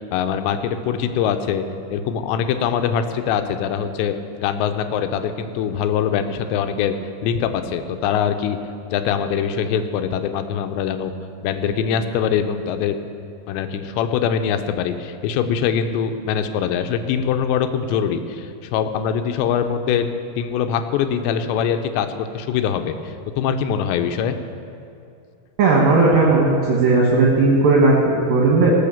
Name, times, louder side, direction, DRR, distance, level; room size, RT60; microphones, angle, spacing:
voice 1, 0.1-1.6 1.9-6.9 7.2-8.6 8.9-11.1 11.4-13.0 13.5-20.1 20.4-24.3, left 8 dB, 85° left, 8 dB, 2.9 m, -23 dB
voice 2, 25.6-28.7, right 3 dB, 65° right, -3 dB, 2.8 m, -16 dB
19.0 x 6.4 x 7.1 m, 2.5 s
omnidirectional pair, 5.0 m